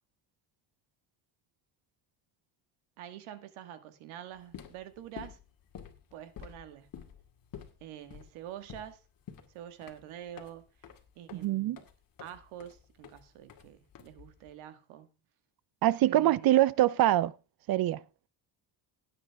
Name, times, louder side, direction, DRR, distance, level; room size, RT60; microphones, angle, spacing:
voice 1, 3.0-5.4 6.1-6.9 7.8-9.0 9.5-10.7 11.2-11.8 12.2-15.2 16.0-16.6, right 11 dB, 80° right, 1.8 m, -46 dB
sound 1, 4.4-14.6, left 8 dB, 45° left, 2.2 m, -50 dB
voice 2, 11.3-11.8 15.8-17.3 17.7-18.0, right 14 dB, 50° right, 0.6 m, -24 dB
16.5 x 8.9 x 3.5 m
cardioid pair, 115°, 48 cm